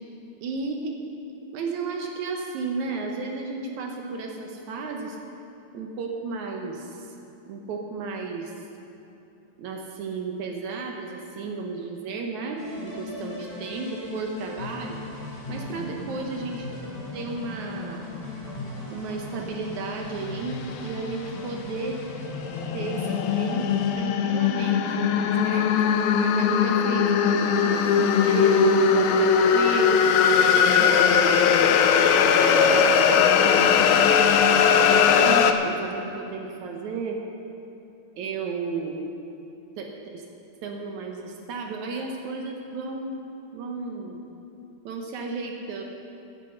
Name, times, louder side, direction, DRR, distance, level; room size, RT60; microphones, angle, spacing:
voice 1, 0.4-1.0 1.5-5.2 5.7-7.1 7.5-8.5 9.6-15.0 15.5-16.7 17.1-18.1 18.9-22.0 22.7-25.1 25.4-25.7 26.2-30.0 30.7-34.1 34.7-37.2 38.2-39.0 39.8-40.2 40.6-43.2 43.5-44.2 44.9-45.8, right 4 dB, 70° right, 2 dB, 1.8 m, -33 dB
sound 1, 12.6-23.9, left 2 dB, 25° left, 3.9 m, -37 dB
sound 2, 22.3-35.5, left 6 dB, 80° left, 2.3 m, -19 dB
14.5 x 8.6 x 5.6 m, 2.8 s
omnidirectional pair, 4.3 m